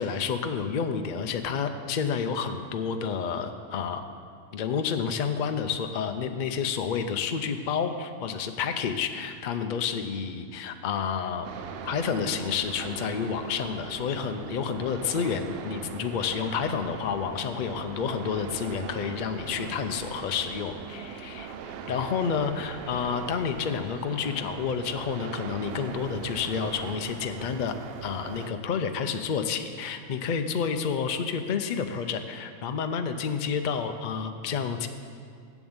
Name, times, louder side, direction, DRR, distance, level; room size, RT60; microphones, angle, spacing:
voice 1, 0.0-4.0 4.5-11.5 11.8-27.8 28.0-34.9, left 6 dB, 85° left, 8 dB, 0.4 m, -30 dB
sound 1, 11.4-28.5, right 7 dB, 70° right, 0.5 m, -40 dB
7.2 x 7.1 x 7.9 m, 2.2 s
omnidirectional pair, 1.5 m